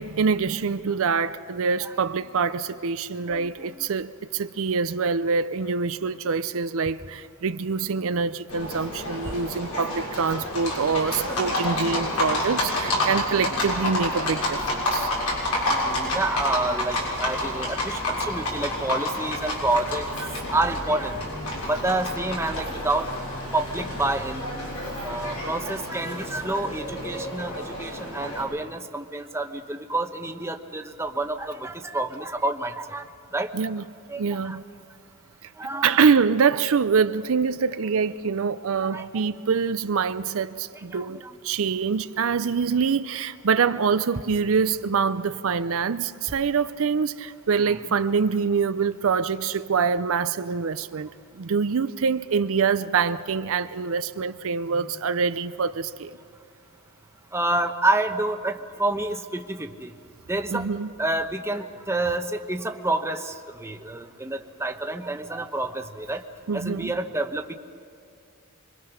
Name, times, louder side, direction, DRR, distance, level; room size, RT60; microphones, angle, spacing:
voice 1, 0.0-15.1 33.5-33.8 34.2-34.6 35.4-51.1 51.3-56.1 60.5-60.9 66.5-66.9, right 5 dB, 65° right, 0.5 m, -25 dB
voice 2, 3.3-3.9 9.3-9.4 15.7-21.3 21.6-23.1 23.5-24.5 25.0-33.5 34.1-34.6 35.6-36.0 38.8-39.3 40.9-41.4 47.7-47.8 54.7-54.9 57.3-59.9 60.3-60.7 61.0-66.3 66.5-67.5, right 2 dB, 10° right, 0.9 m, -28 dB
Livestock farm animals working animals, 8.5-28.4, left 1 dB, 85° left, 6.9 m, -29 dB
26.5 x 23.0 x 5.8 m
head